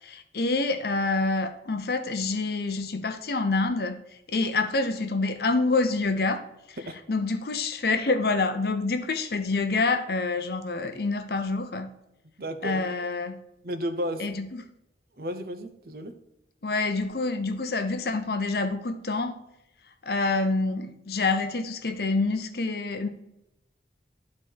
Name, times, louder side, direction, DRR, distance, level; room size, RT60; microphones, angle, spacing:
voice 1, 0.0-4.0 4.3-6.8 7.1-11.9 12.6-13.4 14.2-14.6 16.6-19.4 20.0-23.1, left 3 dB, 55° left, 8 dB, 0.7 m, -27 dB
voice 2, 12.4-12.8 13.6-14.3 15.2-16.2, equal, 55° right, 8 dB, 0.8 m, -33 dB
10.5 x 4.2 x 4.6 m, 0.87 s
head